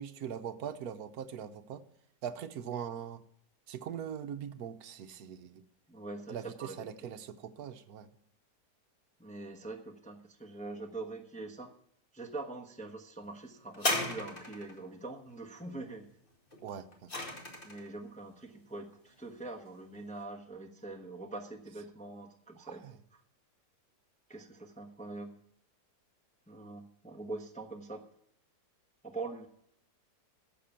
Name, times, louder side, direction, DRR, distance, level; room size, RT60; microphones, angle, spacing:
voice 1, 0.0-1.8 2.2-3.2 3.7-5.6 6.3-8.1 16.6-17.1 22.6-22.9, right 8 dB, 65° right, 9 dB, 1.3 m, -41 dB
voice 2, 5.9-6.9 9.2-11.7 12.1-16.1 17.6-22.8 24.3-25.4 26.5-28.1 29.0-29.5, right 2 dB, 5° left, 2 dB, 1.0 m, -43 dB
sound 1, 13.7-14.8 16.5-17.9 18.7-18.8, left 2 dB, 30° left, 2.2 m, -34 dB
12.5 x 7.6 x 5.7 m, 0.71 s
omnidirectional pair, 1.8 m